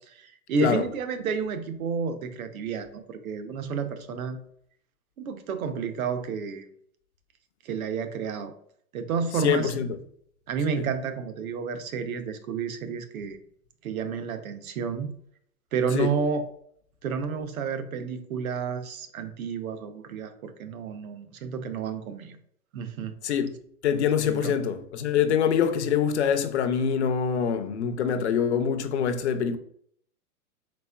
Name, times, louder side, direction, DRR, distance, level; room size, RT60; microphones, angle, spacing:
voice 1, 0.1-4.4 5.2-6.7 7.6-8.5 8.9-9.7 10.5-13.4 13.8-15.1 15.7-16.4 17.0-22.4 22.7-23.1 24.3-24.5, right 5 dB, 70° right, 0.8 m, -30 dB
voice 2, 9.4-9.9 10.8-10.9 15.9-16.1 23.2-23.5 23.8-29.6, left 7 dB, 50° left, 0.5 m, -24 dB
4.2 x 4.2 x 2.2 m
hypercardioid pair, 165°, 45 cm